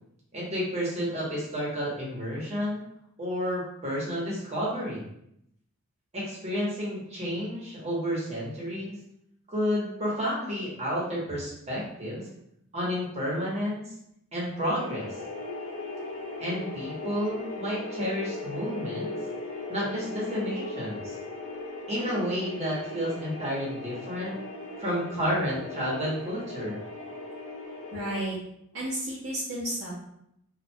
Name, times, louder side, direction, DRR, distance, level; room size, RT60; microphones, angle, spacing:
voice 1, 0.3-2.8 3.2-5.1 6.1-8.9 9.5-12.3 12.7-13.8 14.3-15.1 16.4-19.1 19.7-21.1 21.9-24.3 24.8-26.8, equal, 30° right, -5 dB, 1.0 m, -31 dB
sound 1, 14.8-28.2, left 2 dB, 85° left, 1.0 m, -38 dB
voice 2, 27.9-28.4 28.7-29.9, right 1 dB, 65° right, -8 dB, 0.8 m, -32 dB
4.3 x 2.4 x 2.2 m, 0.76 s
head